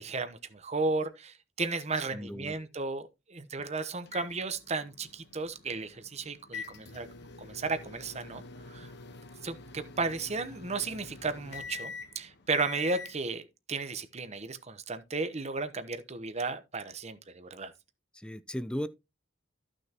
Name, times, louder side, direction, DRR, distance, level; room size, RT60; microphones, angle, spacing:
voice 1, 0.0-7.1 7.4-8.4 8.7-8.9 9.4-13.4 13.7-17.7, right 3 dB, 35° right, 0.9 m, -34 dB
voice 2, 2.1-2.6 18.1-18.9, equal, 5° left, 0.5 m, -36 dB
sound 1, 4.1-13.2, left 4 dB, 60° left, 1.2 m, -46 dB
14.0 x 6.4 x 2.9 m
head